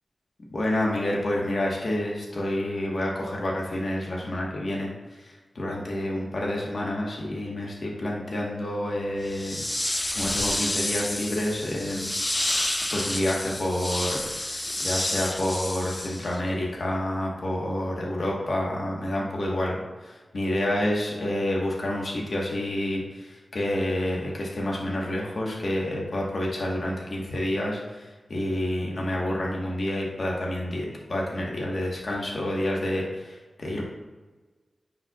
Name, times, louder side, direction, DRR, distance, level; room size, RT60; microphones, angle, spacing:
voice 1, 0.5-12.1 12.9-33.9, left 1 dB, 60° left, -3 dB, 1.3 m, -29 dB
sound 1, 9.3-16.5, left 1 dB, 20° left, 0.4 m, -29 dB
9.6 x 5.6 x 2.4 m, 1.3 s
wide cardioid pair, 100°, 0 cm